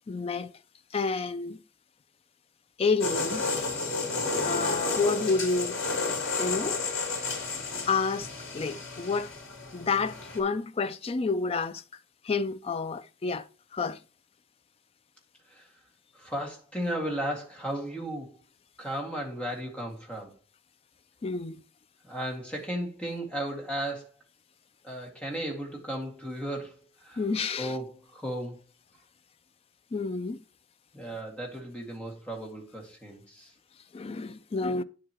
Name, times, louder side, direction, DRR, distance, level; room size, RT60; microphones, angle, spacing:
voice 1, 0.1-0.5 0.9-1.6 2.8-3.5 4.4-5.8 6.4-6.8 7.8-8.3 8.5-9.3 9.7-11.8 12.3-13.5 13.7-14.0 21.2-21.6 27.2-27.7 29.9-30.4 33.9-34.8, left 4 dB, 30° left, 0.3 m, -29 dB
sound 1, 3.0-10.4, left 3 dB, 70° left, 3.6 m, -31 dB
voice 2, 4.1-4.6 15.5-15.6 16.1-18.4 18.8-20.3 22.0-24.1 24.8-26.7 27.0-27.2 27.6-28.6 30.9-33.5, right 1 dB, 5° left, 2.0 m, -35 dB
9.4 x 7.7 x 3.0 m
head